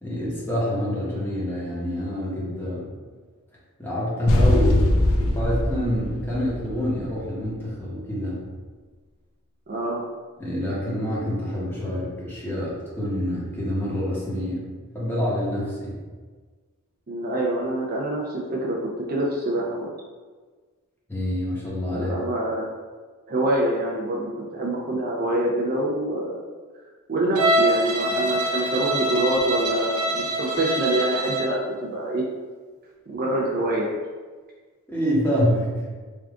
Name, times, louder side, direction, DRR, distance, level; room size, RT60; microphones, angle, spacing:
voice 1, 0.0-2.9 3.8-8.5 10.4-14.7 14.9-16.0 21.1-22.1 34.9-35.8, equal, 10° left, -7 dB, 1.0 m, -26 dB
sound 1, 4.3-7.2, left 1 dB, 65° left, 0.5 m, -21 dB
voice 2, 9.7-10.0 17.1-19.9 21.9-22.8 23.3-26.4 27.1-32.2 33.1-33.9, right 1 dB, 45° right, -2 dB, 0.5 m, -25 dB
Bowed string instrument, 27.3-31.6, right 2 dB, 90° right, 0.6 m, -24 dB
3.5 x 2.4 x 3.6 m, 1.4 s
head